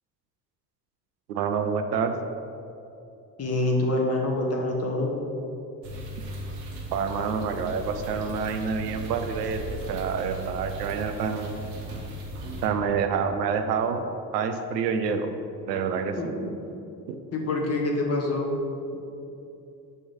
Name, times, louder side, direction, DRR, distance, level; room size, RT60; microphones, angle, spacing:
voice 1, 1.3-2.1 6.9-11.5 12.6-14.0 14.3-15.3 15.7-16.3 17.1-17.2, right 6 dB, 80° right, 7 dB, 0.5 m, -27 dB
voice 2, 3.4-5.2 16.2-16.3 17.3-18.5, left 2 dB, 30° left, 0 dB, 1.1 m, -26 dB
sound 1, 5.8-12.7, right 1 dB, 55° right, 1.2 m, -37 dB
9.0 x 3.1 x 4.1 m, 2.8 s
figure-of-eight pair, 50°, 48 cm